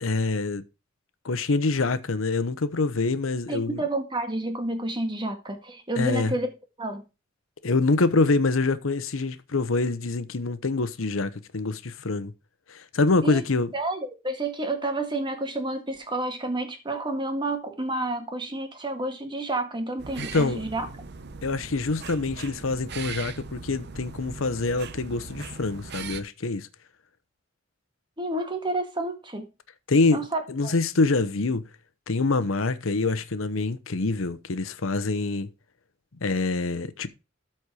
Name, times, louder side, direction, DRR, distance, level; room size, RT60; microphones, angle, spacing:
voice 1, 0.0-0.6 1.2-3.8 6.0-6.4 7.6-12.3 12.7-13.7 20.2-20.6 21.4-26.7 29.9-31.6 32.1-35.5 36.2-37.1, left 3 dB, 85° left, 0.9 m, -25 dB
voice 2, 3.5-6.5 6.8-7.0 13.2-13.4 13.7-20.9 28.2-29.5 30.1-30.7, right 2 dB, 25° right, 1.8 m, -30 dB
sound 1, 20.0-26.2, right 5 dB, 55° right, 0.8 m, -39 dB
13.0 x 4.4 x 4.8 m
head